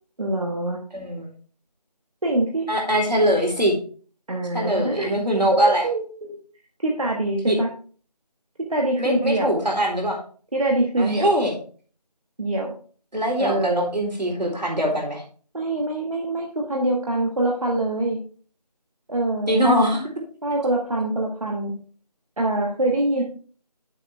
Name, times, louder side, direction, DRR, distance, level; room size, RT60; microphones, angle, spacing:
voice 1, 0.2-0.8 2.2-2.7 4.3-5.1 5.5-6.4 6.8-7.7 8.7-9.6 10.5-11.3 12.4-12.7 13.4-13.9 15.5-18.2 19.1-19.6 20.4-21.7 22.4-23.2, right 2 dB, 55° right, -1 dB, 1.3 m, -24 dB
voice 2, 0.9-1.3 2.7-3.8 4.5-5.8 7.5-7.6 9.0-10.2 11.0-11.6 13.1-15.2 19.5-20.0 23.2-23.3, equal, 80° right, 0 dB, 3.8 m, -22 dB
8.4 x 6.8 x 3.2 m, 0.42 s
figure-of-eight pair, 170°, 21 cm